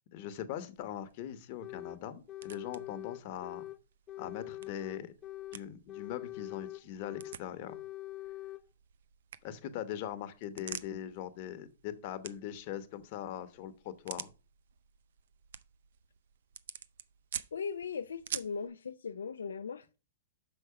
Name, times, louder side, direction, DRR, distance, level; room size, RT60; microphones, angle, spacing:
voice 1, 0.1-3.7 4.2-5.1 5.5-7.8 9.4-14.3, left 10 dB, 45° left, 1.0 m, -41 dB
sound 1, 0.5-18.7, right 9 dB, 70° right, 0.4 m, -49 dB
sound 2, 1.6-2.0 2.3-3.8 4.1-5.6 5.9-7.4 7.7-8.6, left 15 dB, 25° left, 0.4 m, -44 dB
voice 2, 17.5-20.0, left 5 dB, 85° left, 0.4 m, -39 dB
6.1 x 4.8 x 5.7 m
hypercardioid pair, 130°, 0 cm